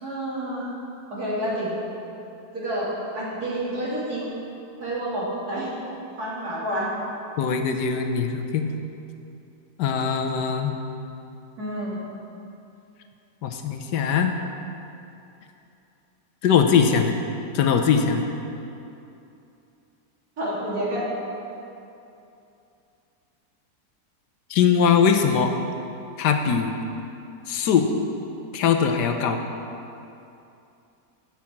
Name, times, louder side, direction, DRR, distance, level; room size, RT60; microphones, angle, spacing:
voice 1, 0.0-0.7 1.1-1.7 2.5-4.3 4.8-5.7 6.2-6.9 11.6-12.2 20.4-21.1, right 1 dB, 65° right, -7 dB, 3.0 m, -29 dB
voice 2, 7.4-8.7 9.8-10.7 13.4-14.3 16.4-17.2 17.5-18.2 24.5-25.6 26.2-26.8 27.5-27.9 28.5-29.4, left 6 dB, 85° left, 5 dB, 1.4 m, -21 dB
9.5 x 5.8 x 7.2 m, 2.7 s
omnidirectional pair, 1.8 m